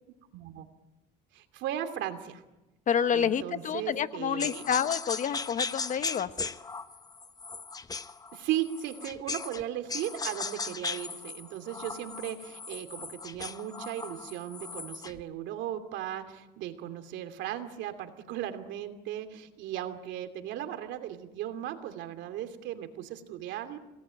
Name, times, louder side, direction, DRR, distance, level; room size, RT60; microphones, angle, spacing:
voice 1, 0.1-0.7 1.3-2.4 3.1-4.6 8.3-23.8, right 11 dB, 75° right, 8 dB, 2.8 m, -37 dB
voice 2, 2.9-6.3, left 8 dB, 40° left, 12 dB, 1.1 m, -28 dB
sound 1, 4.4-9.6 9.9-15.2, left 4 dB, 20° left, 1.0 m, -37 dB
27.0 x 19.0 x 9.0 m, 1.0 s
cardioid pair, 125°, 19 cm